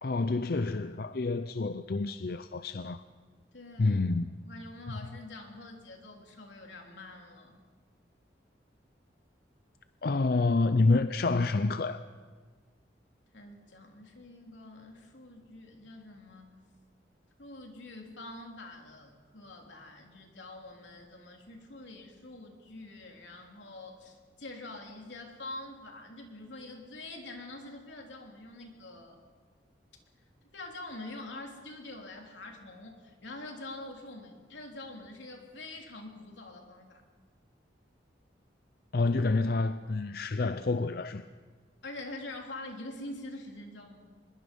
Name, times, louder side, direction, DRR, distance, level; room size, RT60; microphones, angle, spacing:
voice 1, 0.0-3.0 3.8-4.3 10.0-12.0 38.9-41.2, left 3 dB, 55° left, 0.5 m, -28 dB
voice 2, 3.5-4.0 4.4-7.6 13.3-16.5 17.4-29.2 30.5-37.0 41.8-44.0, left 2 dB, 85° left, 3.3 m, -45 dB
25.0 x 21.5 x 5.3 m
head